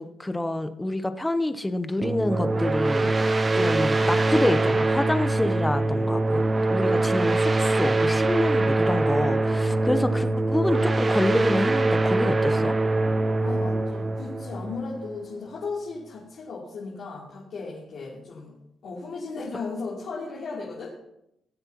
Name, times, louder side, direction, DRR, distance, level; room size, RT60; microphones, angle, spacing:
voice 1, 0.0-6.4 6.7-12.8, left 1 dB, 10° left, 10 dB, 0.8 m, -27 dB
sound 1, 2.0-15.3, right 2 dB, 30° right, 0.7 m, -23 dB
voice 2, 13.4-18.5 18.8-20.9, left 4 dB, 65° left, -7 dB, 3.1 m, -36 dB
19.0 x 7.6 x 3.0 m, 0.80 s
cardioid pair, 90°, 0 cm